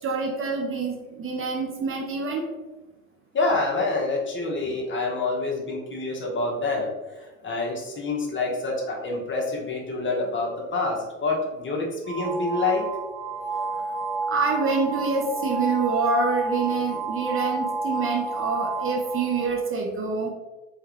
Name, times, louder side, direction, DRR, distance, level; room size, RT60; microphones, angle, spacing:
voice 1, 0.0-2.4 4.6-4.7 14.3-20.3, right 4 dB, 30° right, 0 dB, 0.9 m, -26 dB
voice 2, 3.3-6.9 7.4-12.8, left 3 dB, 30° left, -1 dB, 1.2 m, -27 dB
sound 1, 12.1-19.6, right 3 dB, 5° right, 0.9 m, -30 dB
3.6 x 3.6 x 3.1 m, 1.2 s
figure-of-eight pair, 65°, 41 cm